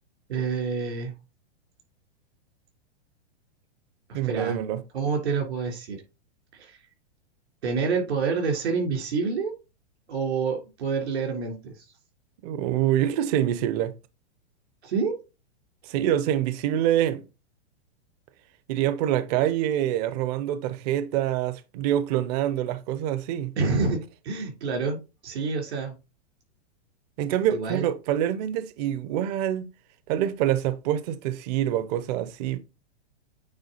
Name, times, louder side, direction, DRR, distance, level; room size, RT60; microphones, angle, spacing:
voice 1, 0.3-1.1 4.1-4.6 4.9-6.0 6.5-6.8 7.6-9.5 10.1-11.8 14.8-15.2 23.6-25.0 25.2-25.9 27.5-27.8, right 5 dB, 75° right, 3.6 m, -27 dB
voice 2, 4.1-4.8 12.4-13.9 15.8-17.3 18.7-23.5 27.2-29.7 30.1-32.6, right 11 dB, 40° right, 0.7 m, -26 dB
8.8 x 3.6 x 4.0 m
hypercardioid pair, 140°, 33 cm